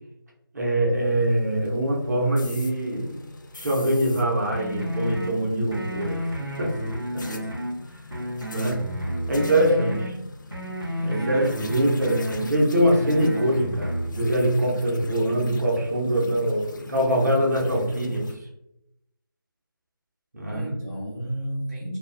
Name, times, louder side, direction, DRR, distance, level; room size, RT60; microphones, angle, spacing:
voice 1, 0.5-3.2 3.5-6.7 7.1-7.4 7.9-8.0 8.5-8.9 9.3-10.2 11.0-18.5 20.3-20.6, right 1 dB, 50° right, -2 dB, 0.8 m, -23 dB
sound 1, 0.9-18.4, left 2 dB, 55° left, 0.4 m, -43 dB
sound 2, 4.5-5.3 5.7-7.7 8.1-10.1 10.5-12.5 12.9-14.1, equal, 85° right, 0.9 m, -31 dB
voice 2, 9.3-9.7 11.0-11.5 20.4-22.0, equal, 5° right, -16 dB, 0.4 m, -32 dB
2.3 x 2.2 x 2.5 m, 0.83 s
figure-of-eight pair, 165°, 12 cm